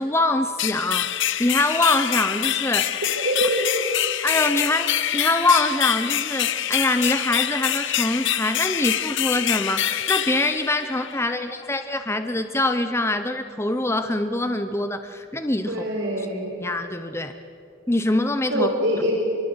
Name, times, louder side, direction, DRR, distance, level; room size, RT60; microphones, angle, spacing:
voice 1, 0.0-2.9 4.2-15.8 16.2-16.3 16.6-17.3 17.9-18.7, left 2 dB, 15° left, 8 dB, 0.8 m, -24 dB
sound 1, 0.6-11.3, left 11 dB, 60° left, 0.8 m, -25 dB
voice 2, 3.0-3.8 15.7-16.5 18.5-19.1, equal, 60° right, -1 dB, 4.7 m, -24 dB
25.0 x 23.5 x 8.1 m, 2.6 s
head